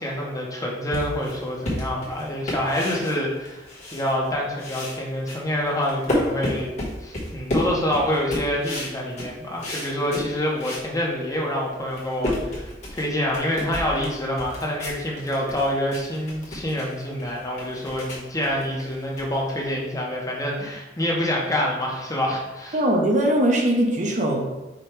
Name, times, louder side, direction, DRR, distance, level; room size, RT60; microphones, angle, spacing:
voice 1, 0.0-6.7 7.0-22.8, left 1 dB, 20° left, -2 dB, 0.7 m, -27 dB
sound 1, 0.9-4.3 4.6-10.9 11.3-11.4 11.8-19.9, left 1 dB, 40° left, 1.3 m, -31 dB
voice 2, 22.7-24.4, right 1 dB, 40° right, 1 dB, 0.6 m, -20 dB
5.0 x 2.2 x 4.4 m, 1.0 s
head